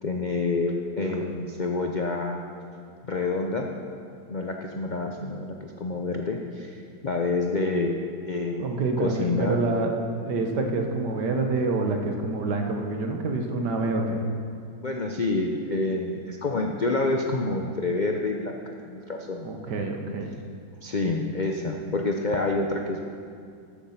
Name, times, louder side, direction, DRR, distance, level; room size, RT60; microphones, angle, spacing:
voice 1, 0.0-2.4 3.0-3.7 4.3-9.6 14.8-19.5 20.8-23.0, left 3 dB, 90° left, 2 dB, 0.4 m, -28 dB
voice 2, 8.6-14.2 19.4-20.3, right 3 dB, 70° right, 3 dB, 1.7 m, -27 dB
14.0 x 7.2 x 5.7 m, 2.3 s
omnidirectional pair, 1.9 m